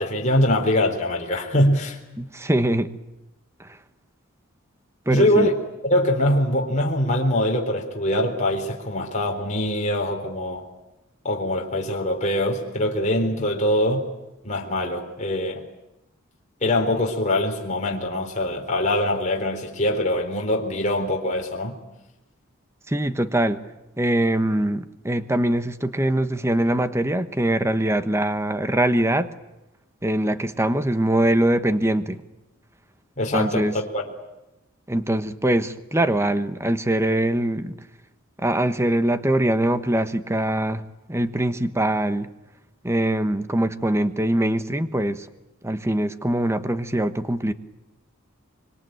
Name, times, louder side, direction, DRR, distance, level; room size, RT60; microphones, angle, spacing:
voice 1, 0.0-2.0 5.1-5.5 5.9-10.6 11.2-14.0 14.4-15.6 16.6-21.7 33.2-33.7 33.9-34.0, left 1 dB, 35° left, 0 dB, 3.8 m, -23 dB
voice 2, 2.2-2.9 3.6-3.8 5.1-5.5 22.9-23.6 24.0-29.3 30.0-32.2 33.3-33.8 34.9-37.8 38.4-40.8 41.1-42.3 42.8-45.3 45.6-47.5, right 1 dB, 15° right, 11 dB, 1.2 m, -23 dB
25.5 x 23.5 x 9.2 m, 0.95 s
head